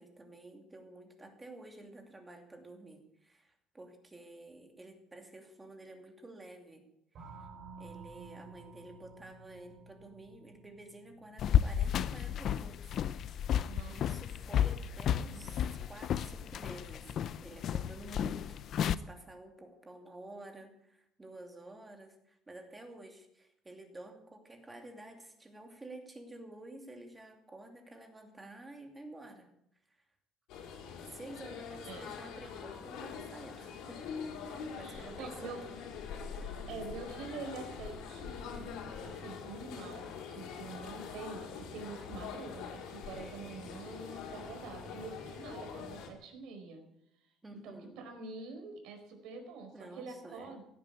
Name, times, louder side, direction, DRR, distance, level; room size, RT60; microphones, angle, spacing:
voice 1, 0.0-6.9 7.1-7.5 7.8-13.0 13.9-17.1 17.4-29.5 31.1-34.0 34.4-35.6 36.1-36.6 43.1-43.8 47.4-48.0 49.7-50.6, right 2 dB, 15° right, 4 dB, 2.7 m, -51 dB
sound 1, 7.1-13.5, right 3 dB, 45° right, 4.0 m, -54 dB
sound 2, 11.4-19.0, left 9 dB, 45° left, 0.6 m, -32 dB
voice 2, 13.6-14.0 15.3-15.4 31.8-32.1 34.7-35.6 36.7-38.8 39.0-46.8 47.5-50.6, right 4 dB, 70° right, 5 dB, 4.8 m, -46 dB
sound 3, 30.5-46.1, left 6 dB, 70° left, 4.1 m, -44 dB
16.5 x 10.5 x 8.4 m, 0.75 s
cardioid pair, 155°, 0 cm